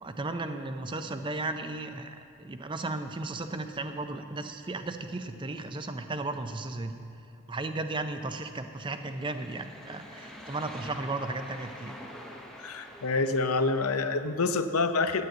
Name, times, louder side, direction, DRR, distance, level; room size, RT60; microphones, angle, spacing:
voice 1, 0.0-7.0 7.5-11.9, right 2 dB, 20° right, 8 dB, 0.5 m, -35 dB
sound 1, 8.8-14.2, equal, ahead, 0.8 m, -46 dB
voice 2, 12.6-15.3, left 3 dB, 85° left, 9 dB, 0.7 m, -27 dB
9.6 x 9.3 x 7.8 m, 2.5 s
head